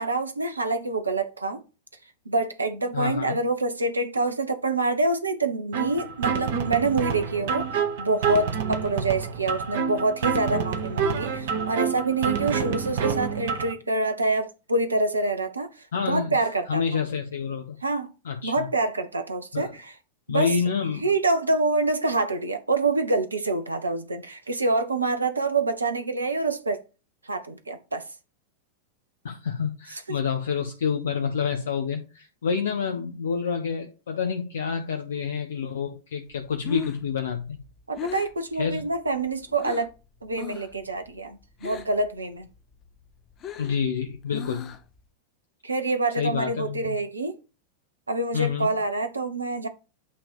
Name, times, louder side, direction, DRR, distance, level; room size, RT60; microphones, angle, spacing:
voice 1, 0.0-1.6 2.3-7.7 8.0-15.7 16.0-16.8 17.8-18.1 18.4-19.9 20.3-20.5 21.0-26.8 27.2-28.0 29.9-30.2 37.9-39.9 40.2-42.5 45.6-47.3 48.1-49.7, right 3 dB, 80° right, 0.7 m, -26 dB
voice 2, 2.9-3.4 15.9-16.4 16.7-17.8 18.2-18.7 19.5-19.7 20.3-21.1 29.2-37.6 38.6-38.8 43.6-44.7 46.2-47.0 48.3-48.7, left 6 dB, 65° left, 0.8 m, -28 dB
sound 1, 5.7-13.7, right 6 dB, 55° right, 1.1 m, -28 dB
Breathing, 36.4-40.0 40.3-40.8 41.1-42.1 42.4-45.0, left 7 dB, 30° left, 0.7 m, -38 dB
8.6 x 2.9 x 5.0 m
figure-of-eight pair, 90°, 0 cm